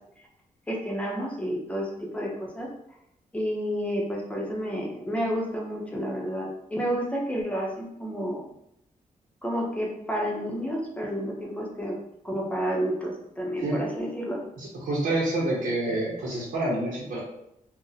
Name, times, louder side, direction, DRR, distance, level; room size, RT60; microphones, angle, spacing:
voice 1, 0.7-2.7 3.3-8.4 9.4-12.0 12.2-14.4, equal, 10° left, -2 dB, 0.6 m, -30 dB
voice 2, 14.6-17.2, right 2 dB, 85° right, -7 dB, 0.8 m, -27 dB
2.6 x 2.0 x 3.9 m, 0.81 s
wide cardioid pair, 145°, 14 cm